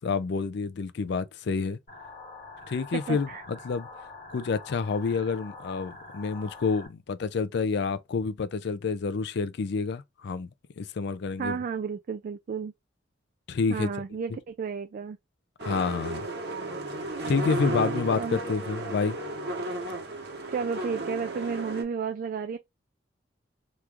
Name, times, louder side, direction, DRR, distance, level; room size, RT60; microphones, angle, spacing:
voice 1, 0.0-1.8 2.7-3.9 4.3-10.5 10.8-11.6 13.5-13.9 15.6-16.3 17.3-19.2, left 5 dB, 65° left, 0.4 m, -28 dB
sound 1, 1.9-6.9, left 3 dB, 45° left, 1.2 m, -45 dB
voice 2, 2.9-3.4 11.4-12.7 13.7-15.2 18.1-18.4 20.5-22.6, right 6 dB, 50° right, 0.3 m, -32 dB
sound 2, 15.6-21.8, right 1 dB, 65° right, 1.0 m, -33 dB
3.0 x 2.4 x 3.4 m
head